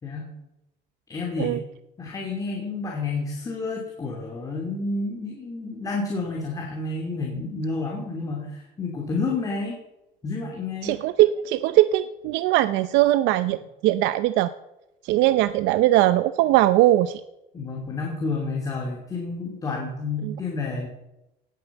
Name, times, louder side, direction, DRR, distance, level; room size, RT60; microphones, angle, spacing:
voice 1, 0.0-0.3 1.1-1.6 2.0-9.8 10.2-10.9 17.5-20.9, left 3 dB, 20° left, -1 dB, 2.7 m, -30 dB
voice 2, 10.8-14.5 15.0-17.2 20.2-20.3, right 15 dB, 80° right, 13 dB, 0.7 m, -20 dB
18.0 x 9.3 x 7.2 m, 0.92 s
cardioid pair, 175°, 19 cm